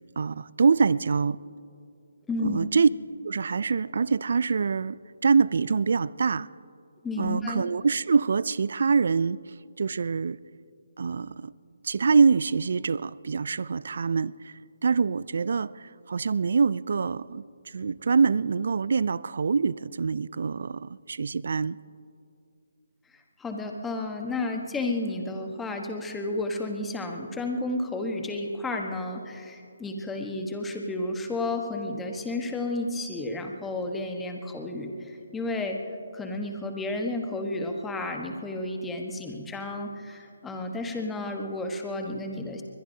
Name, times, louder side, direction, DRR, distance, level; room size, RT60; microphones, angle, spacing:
voice 1, 0.2-1.4 2.4-2.9 3.2-5.0 5.2-6.5 7.2-9.4 9.8-10.4 11.0-11.5 11.8-14.5 14.8-17.4 17.7-21.8, right 5 dB, 65° right, 0.3 m, -24 dB
voice 2, 2.3-2.6 7.0-7.6 23.4-35.8 36.1-42.6, left 2 dB, 10° left, 1.2 m, -32 dB
22.0 x 21.5 x 2.8 m
figure-of-eight pair, 150°, 0 cm